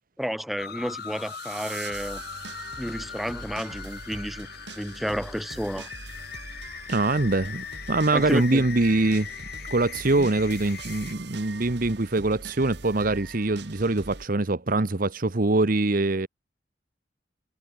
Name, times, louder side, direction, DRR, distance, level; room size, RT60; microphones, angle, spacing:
voice 1, 0.2-2.2 2.8-4.5 4.7-5.9 8.1-8.6 10.1-10.3, equal, ahead, 2.3 m, -31 dB
sound 1, 0.6-11.1, left 8 dB, 60° left, 1.1 m, -40 dB
sound 2, 0.9-14.2, right 3 dB, 65° right, 2.5 m, -42 dB
voice 2, 6.9-9.3 9.7-16.3, right 2 dB, 50° right, 1.1 m, -24 dB
head